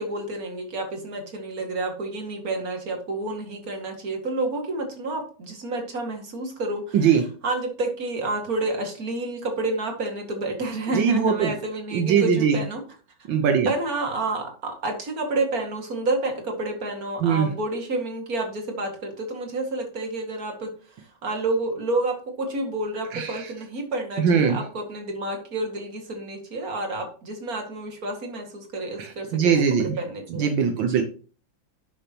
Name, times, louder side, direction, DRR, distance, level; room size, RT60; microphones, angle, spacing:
voice 1, 0.0-7.0 7.4-12.8 13.7-20.7 21.0-30.5 30.8-31.0, right 2 dB, 45° right, 3 dB, 2.5 m, -29 dB
voice 2, 10.9-11.5 11.9-12.6 13.3-13.7 17.2-17.5 23.1-23.5 24.2-24.6 29.0-30.0 30.3-31.0, right 7 dB, 75° right, 5 dB, 1.7 m, -21 dB
11.0 x 6.8 x 2.9 m, 0.39 s
omnidirectional pair, 2.1 m